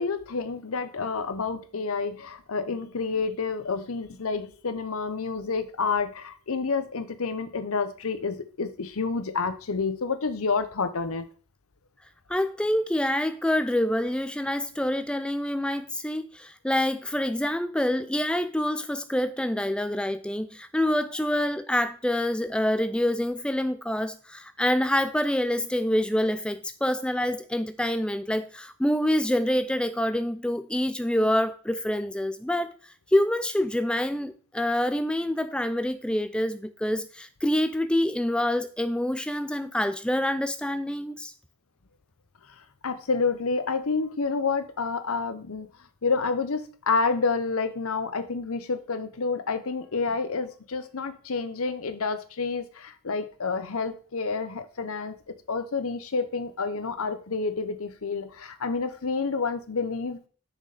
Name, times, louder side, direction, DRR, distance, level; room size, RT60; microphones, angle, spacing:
voice 1, 0.0-11.2 42.6-45.7 46.0-55.2 55.5-60.3, left 4 dB, 75° left, 0.8 m, -29 dB
voice 2, 12.3-32.7 33.1-41.3, left 1 dB, 5° left, 0.4 m, -26 dB
6.3 x 6.3 x 4.0 m
head